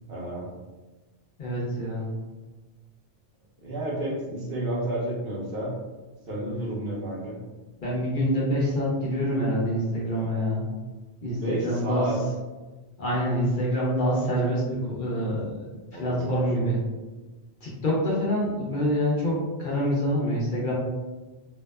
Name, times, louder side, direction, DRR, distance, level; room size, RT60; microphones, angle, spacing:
voice 1, 0.1-0.5 3.6-5.7 6.3-7.4 11.4-12.2 15.9-16.7, right 1 dB, 65° right, -4 dB, 0.8 m, -31 dB
voice 2, 1.4-2.1 7.8-10.6 11.2-12.1 13.0-15.6 16.0-16.8 17.6-20.7, equal, 55° left, -6 dB, 0.8 m, -26 dB
2.8 x 2.2 x 2.2 m, 1.2 s
omnidirectional pair, 1.1 m